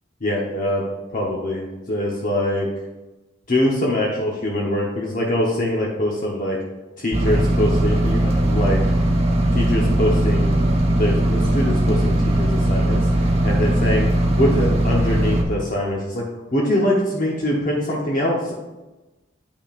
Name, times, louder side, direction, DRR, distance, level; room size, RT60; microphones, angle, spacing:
voice 1, 0.2-2.7 3.5-6.6 7.0-8.9 9.5-10.5 10.9-16.2 16.5-18.5, left 1 dB, 50° left, -3 dB, 1.0 m, -23 dB
sound 1, 7.1-15.4, right 1 dB, 35° right, 1.0 m, -19 dB
8.6 x 5.9 x 2.5 m, 1.1 s
head